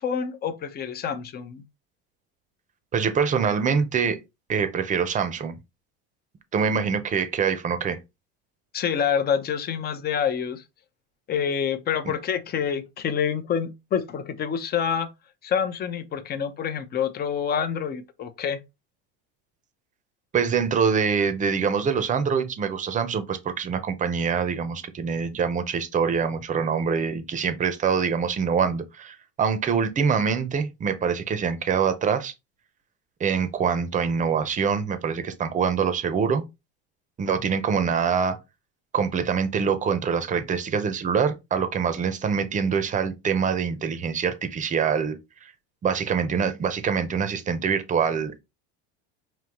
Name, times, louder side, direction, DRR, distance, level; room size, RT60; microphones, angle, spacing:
voice 1, 0.0-1.6 8.7-10.6 11.3-15.1 15.4-18.6 37.7-37.9, left 7 dB, 30° left, 0.7 m, -27 dB
voice 2, 2.9-4.2 4.5-5.6 6.5-8.0 20.3-32.3 33.2-36.4 37.2-38.4 38.9-45.2 45.4-45.5 45.8-48.4, right 6 dB, 25° right, 0.7 m, -24 dB
5.5 x 2.8 x 3.0 m
supercardioid pair, 130°, 33 cm